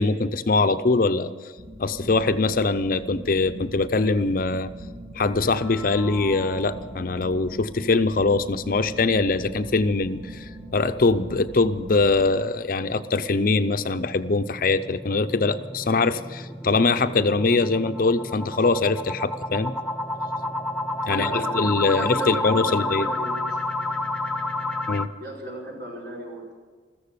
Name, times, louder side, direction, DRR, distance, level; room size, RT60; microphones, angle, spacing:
voice 1, 0.0-1.3 1.8-4.7 5.1-19.7 21.1-23.1 24.9-25.1, left 3 dB, 50° left, 11 dB, 0.6 m, -22 dB
sound 1, 1.6-12.3, right 1 dB, 75° right, 2.1 m, -41 dB
sound 2, 5.4-6.9 7.3-7.4 7.8-7.9 8.3-8.4 13.2-25.1, left 2 dB, 5° left, 0.6 m, -31 dB
voice 2, 21.0-23.6 25.2-26.5, right 1 dB, 60° right, -2 dB, 5.0 m, -35 dB
15.0 x 14.0 x 6.8 m, 1.5 s
head